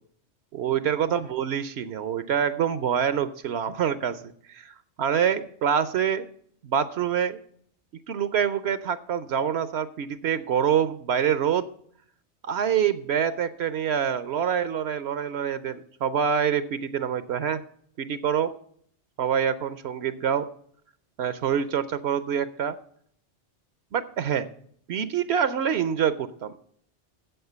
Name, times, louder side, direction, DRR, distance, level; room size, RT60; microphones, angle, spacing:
voice 1, 0.5-4.2 4.5-6.3 6.6-7.4 8.1-11.7 12.4-17.6 18.0-18.5 19.2-20.5 21.2-22.8 23.9-24.5 24.9-26.6, right 8 dB, 70° right, 13 dB, 0.9 m, -26 dB
8.0 x 7.3 x 7.8 m, 0.63 s
omnidirectional pair, 1.2 m